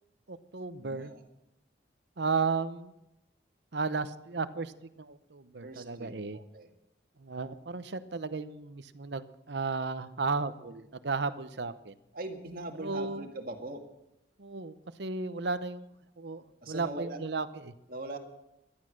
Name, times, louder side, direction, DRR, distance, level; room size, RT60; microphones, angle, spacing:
voice 1, 0.3-1.1 2.2-2.9 3.7-6.4 7.2-11.9 12.8-13.3 14.4-15.9 16.2-17.7, right 4 dB, 65° right, 12 dB, 0.8 m, -34 dB
voice 2, 0.8-1.2 5.6-6.7 12.1-13.8 16.6-17.2 17.9-18.2, right 2 dB, 50° right, 3 dB, 2.0 m, -41 dB
17.0 x 12.0 x 6.4 m, 0.89 s
head